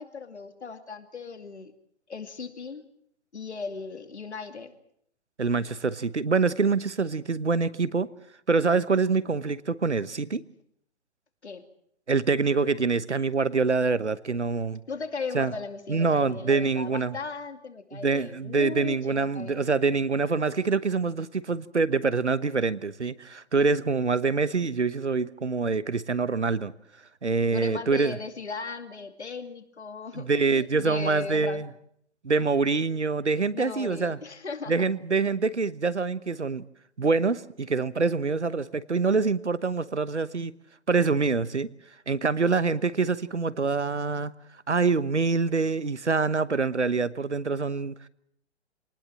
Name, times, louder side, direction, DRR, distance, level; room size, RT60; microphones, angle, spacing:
voice 1, 0.0-1.7 2.1-2.8 3.3-4.7 11.4-11.6 14.9-19.6 27.5-31.6 33.5-34.9, left 4 dB, 75° left, 8 dB, 2.6 m, -37 dB
voice 2, 5.4-8.1 8.5-10.4 12.1-14.8 15.3-15.5 15.9-17.2 17.9-26.7 27.2-28.2 30.1-31.7 32.2-34.2 34.7-36.6 37.0-40.5 40.9-41.7 42.1-44.3 44.7-48.1, right 4 dB, 90° right, 17 dB, 1.2 m, -25 dB
26.0 x 19.5 x 7.5 m, 0.69 s
figure-of-eight pair, 125°, 34 cm